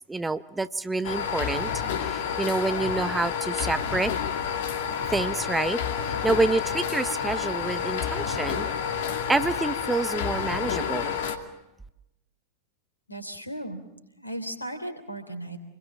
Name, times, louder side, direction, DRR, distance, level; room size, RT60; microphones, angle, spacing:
voice 1, 0.1-1.7 2.0-4.1 5.1-5.8 6.2-8.7 9.3-11.2, right 3 dB, 10° right, 13 dB, 0.8 m, -27 dB
sound 1, 1.0-11.4, left 7 dB, 55° left, 2.4 m, -29 dB
voice 2, 13.1-13.8 14.2-15.6, right 1 dB, 85° left, 9 dB, 3.2 m, -36 dB
27.5 x 21.5 x 7.3 m, 0.89 s
figure-of-eight pair, 90°, 0 cm